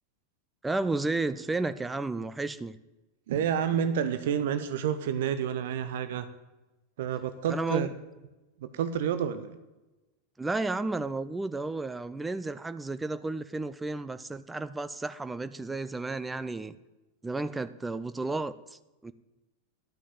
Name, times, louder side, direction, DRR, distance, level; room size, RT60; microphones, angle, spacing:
voice 1, 0.6-2.8 7.5-7.9 10.4-16.7 17.2-19.1, right 3 dB, 10° right, 13 dB, 0.4 m, -32 dB
voice 2, 3.3-6.3 7.0-7.9 8.6-9.5, right 8 dB, 55° right, 11 dB, 0.7 m, -29 dB
11.5 x 6.1 x 9.1 m, 1.1 s
figure-of-eight pair, 90°, 0 cm